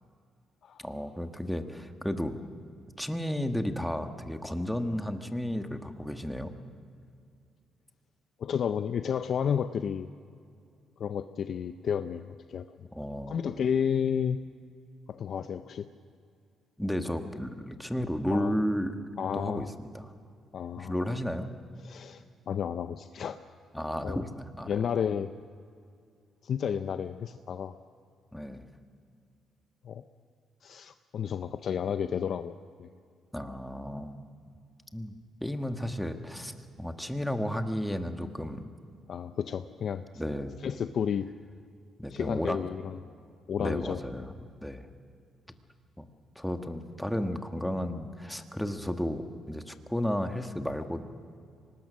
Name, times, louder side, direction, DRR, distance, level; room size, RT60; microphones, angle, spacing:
voice 1, 0.8-2.4 3.0-6.5 12.9-13.4 16.8-19.0 19.3-20.1 20.8-21.5 23.7-24.7 28.3-28.7 33.3-34.2 34.9-35.1 35.4-38.6 40.1-40.5 42.0-42.6 43.6-44.3 44.6-44.9 45.5-45.6 46.0-46.1 46.3-51.0, equal, 5° left, 6 dB, 1.5 m, -33 dB
voice 2, 8.4-10.1 11.0-12.9 13.3-14.4 15.1-15.9 18.3-18.6 19.2-19.7 20.5-21.1 21.8-23.4 24.0-24.2 24.7-25.3 26.4-27.8 29.8-30.0 30.6-32.9 39.1-40.0 40.6-41.3 42.1-43.0 43.5-44.2, left 8 dB, 60° left, 10 dB, 0.6 m, -32 dB
24.5 x 19.5 x 6.3 m, 2.3 s
cardioid pair, 90°, 0 cm